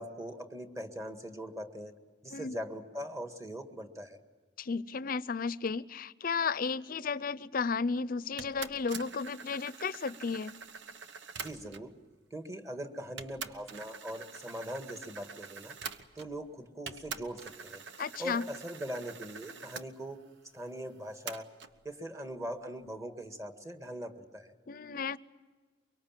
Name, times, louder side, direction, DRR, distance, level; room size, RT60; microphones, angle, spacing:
voice 1, 0.0-1.9 2.2-4.2 11.4-11.9 12.3-15.7 16.2-17.8 18.2-20.2 20.5-21.5 21.8-24.5, equal, 20° right, 6 dB, 1.8 m, -41 dB
voice 2, 4.6-10.5 18.0-18.4 24.7-25.2, left 5 dB, 50° left, 17 dB, 0.6 m, -33 dB
sound 1, 8.4-11.9 12.7-12.8 13.2-16.5 16.9-19.9 21.3-21.7, right 5 dB, 90° right, 1.1 m, -45 dB
24.0 x 23.5 x 7.5 m, 1.4 s
head